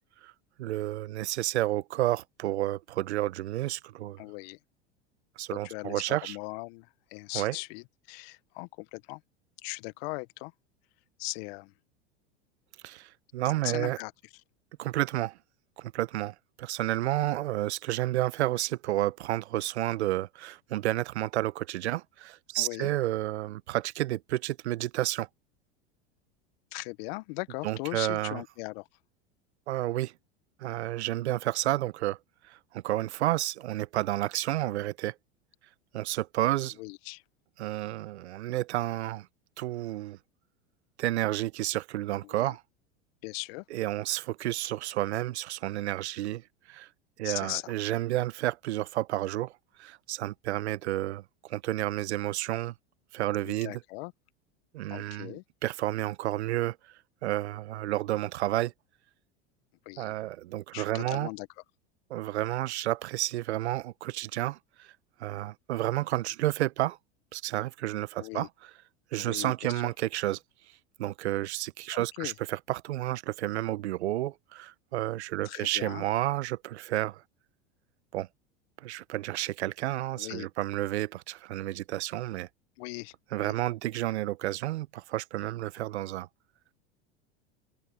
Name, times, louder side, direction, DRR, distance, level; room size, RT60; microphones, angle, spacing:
voice 1, 0.6-4.2 5.4-6.4 7.3-7.5 12.8-14.0 14.8-15.4 15.8-25.3 27.6-28.4 29.7-30.1 30.6-32.2 32.5-35.1 35.9-36.8 37.6-39.3 39.6-40.2 41.0-42.6 43.7-46.9 47.2-49.5 49.8-52.7 53.1-53.8 54.7-56.8 57.2-58.7 60.0-61.3 62.1-64.9 65.2-67.0 67.3-68.5 69.1-70.4 71.0-77.2 78.1-78.3 78.8-82.5 83.3-86.3, right 15 dB, 75° right, 1.2 m, -31 dB
voice 2, 4.2-4.6 5.5-9.2 9.6-10.5 11.2-11.7 13.4-14.1 22.5-22.9 26.7-28.9 36.8-37.2 42.2-42.6 43.2-43.6 47.2-47.7 53.4-54.1 54.9-55.4 59.9-60.1 60.7-61.5 68.2-68.5 69.2-69.8 71.9-72.3 75.5-76.1 80.1-80.5 82.8-83.5, left 26 dB, 60° left, 1.6 m, -39 dB
open air
hypercardioid pair, 95°, 34 cm